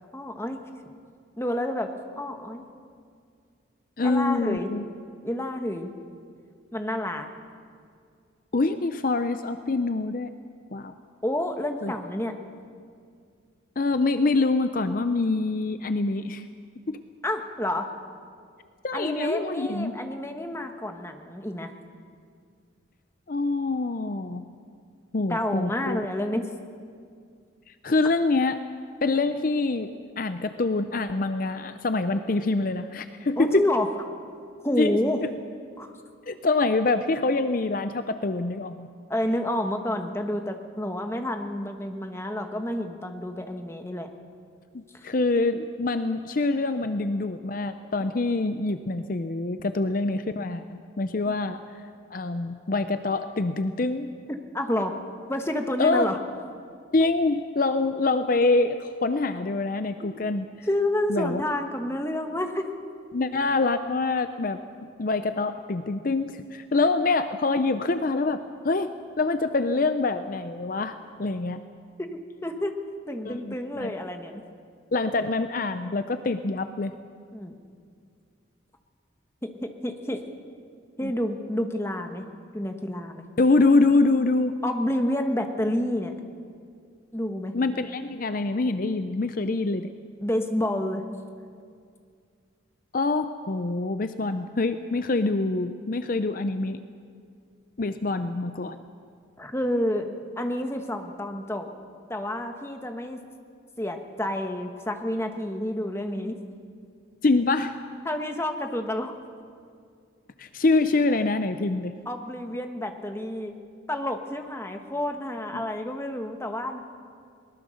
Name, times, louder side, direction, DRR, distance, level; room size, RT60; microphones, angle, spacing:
voice 1, 0.1-0.6 1.4-2.6 4.0-4.7 5.2-5.9 6.7-7.3 11.2-12.4 17.2-17.9 18.9-21.7 25.3-26.5 33.4-33.9 34.6-35.2 35.8-35.9 39.1-44.1 44.9-45.1 54.3-55.0 55.3-56.2 57.0-57.1 60.0-60.1 60.7-62.7 72.1-72.7 73.1-74.4 77.3-77.5 79.4-80.2 81.0-82.2 82.5-83.2 84.6-86.1 87.1-87.6 89.4-89.5 90.2-91.0 99.4-100.1 100.4-101.7 102.1-103.2 103.8-106.4 108.0-109.1 112.1-113.5 113.9-116.8, left 1 dB, 15° left, 5 dB, 1.2 m, -29 dB
voice 2, 4.0-4.8 8.5-10.3 10.7-10.9 11.8-11.9 13.8-16.4 16.9-17.0 18.8-19.9 23.3-24.4 25.1-26.0 27.8-28.6 29.0-29.9 30.2-33.7 34.8-35.0 36.3-38.9 44.7-51.6 52.1-54.1 55.8-56.1 56.9-60.7 61.1-61.4 63.1-64.6 65.0-71.6 73.2-73.9 74.9-76.9 81.0-81.1 83.4-84.5 87.5-89.9 92.9-96.8 97.8-98.8 107.2-107.8 110.4-111.9 115.5-115.6, left 3 dB, 45° left, 10 dB, 0.6 m, -25 dB
21.5 x 19.5 x 6.4 m, 2.2 s
head